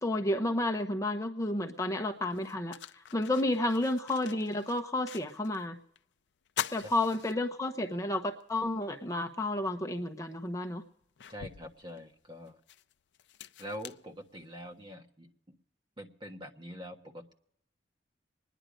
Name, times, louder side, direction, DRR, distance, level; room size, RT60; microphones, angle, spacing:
voice 1, 0.0-5.8 6.7-10.8, left 1 dB, 20° left, 5 dB, 0.8 m, -31 dB
sound 1, 1.6-1.7 2.3-5.6 5.9-6.0 6.4-7.9 8.4-8.5 9.9-10.0 10.6-14.8, left 9 dB, 85° left, 0.5 m, -43 dB
voice 2, 11.3-12.6 13.6-15.3 16.0-17.3, equal, 30° right, 4 dB, 1.3 m, -44 dB
24.0 x 10.0 x 5.1 m, 0.74 s
head